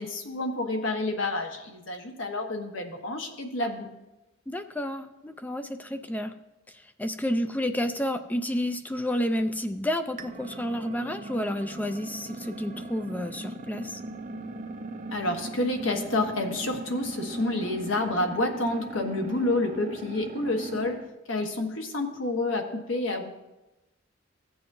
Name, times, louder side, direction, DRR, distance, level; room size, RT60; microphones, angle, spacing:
voice 1, 0.0-3.9 15.1-21.0 21.3-23.3, left 2 dB, 75° left, 3 dB, 1.2 m, -29 dB
voice 2, 4.5-6.3 6.7-14.0, equal, 10° left, 8 dB, 0.4 m, -30 dB
sound 1, 10.2-21.1, right 2 dB, 40° right, 0.6 m, -39 dB
15.5 x 7.7 x 2.7 m, 1.0 s
head